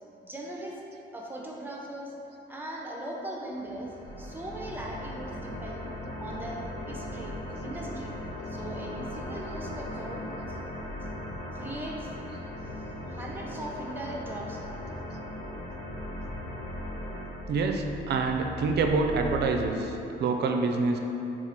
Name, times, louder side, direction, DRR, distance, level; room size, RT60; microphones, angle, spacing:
voice 1, 0.2-0.8 1.1-2.1 2.5-5.9 6.2-7.3 7.6-8.1 8.5-10.6 11.5-12.1 12.5-12.6 13.1-14.6, right 1 dB, 10° right, -2 dB, 0.6 m, -39 dB
sound 1, 3.6-17.3, left 1 dB, 40° left, 1.4 m, -39 dB
sound 2, 4.0-19.7, left 1 dB, 80° left, 0.6 m, -44 dB
voice 2, 17.5-21.0, right 4 dB, 60° right, 3 dB, 0.4 m, -26 dB
3.8 x 2.4 x 4.3 m, 3.0 s
cardioid pair, 90°, 20 cm